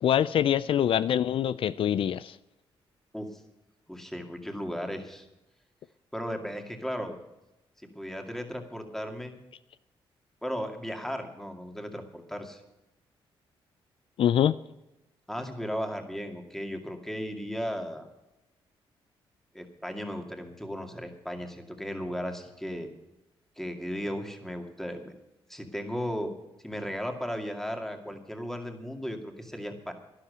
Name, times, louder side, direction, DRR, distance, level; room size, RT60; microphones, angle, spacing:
voice 1, 0.0-2.4 14.2-14.5, left 10 dB, 65° left, 16 dB, 0.4 m, -24 dB
voice 2, 3.9-5.3 6.1-7.2 7.8-9.4 10.4-12.6 15.3-18.1 19.5-22.9 23.6-25.1 25.5-26.3 26.6-29.9, equal, 5° left, 5 dB, 2.2 m, -36 dB
12.0 x 11.5 x 6.8 m, 0.94 s
cardioid pair, 85°, 10 cm